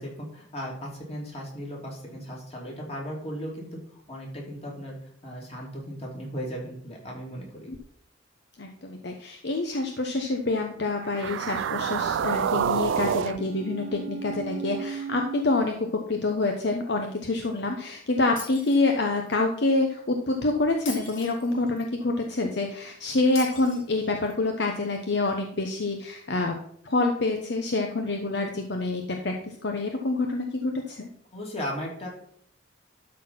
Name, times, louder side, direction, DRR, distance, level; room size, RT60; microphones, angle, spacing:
voice 1, 0.0-3.7 4.1-4.9 5.2-7.7 31.3-32.1, equal, 30° left, -2 dB, 3.1 m, -36 dB
voice 2, 8.6-26.5 26.8-31.1, left 2 dB, 60° left, 3 dB, 0.9 m, -27 dB
sound 1, 11.0-15.4, right 7 dB, 70° right, 0.3 m, -29 dB
Shatter, 18.4-19.3 20.9-21.9 23.4-24.3, left 5 dB, 85° left, 2.8 m, -41 dB
12.5 x 4.2 x 5.8 m, 0.64 s
head